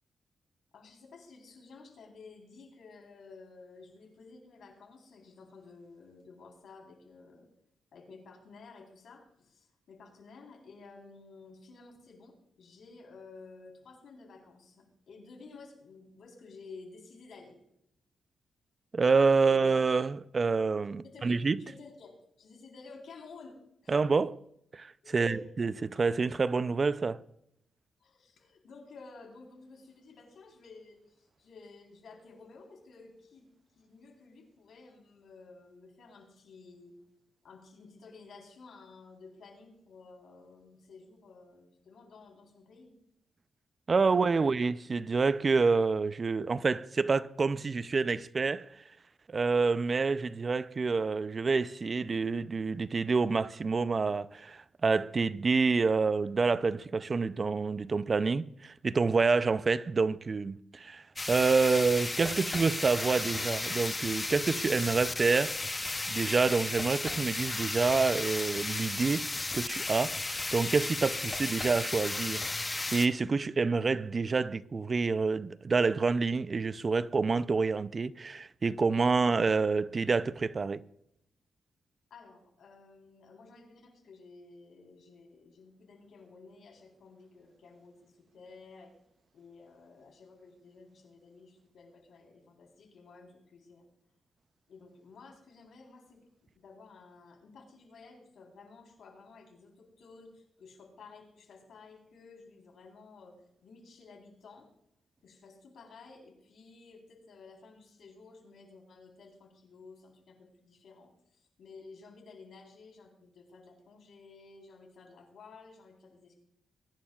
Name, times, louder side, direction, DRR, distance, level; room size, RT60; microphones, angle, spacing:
voice 1, 0.7-7.5 7.9-17.6 19.4-19.7 21.0-22.1 22.4-24.0 25.0-25.4 28.0-36.9 37.4-42.9 82.1-88.9 89.3-93.9 94.7-96.3 96.5-104.7 105.2-116.4, left 4 dB, 70° left, 3.8 m, -53 dB
voice 2, 18.9-21.6 23.9-24.4 24.7-27.2 43.9-48.7 49.3-65.8 66.1-69.3 69.5-80.8, right 4 dB, 40° right, 0.4 m, -28 dB
sound 1, 61.2-73.1, left 2 dB, 20° left, 0.7 m, -34 dB
21.5 x 10.5 x 2.4 m
cardioid pair, 90°, 0 cm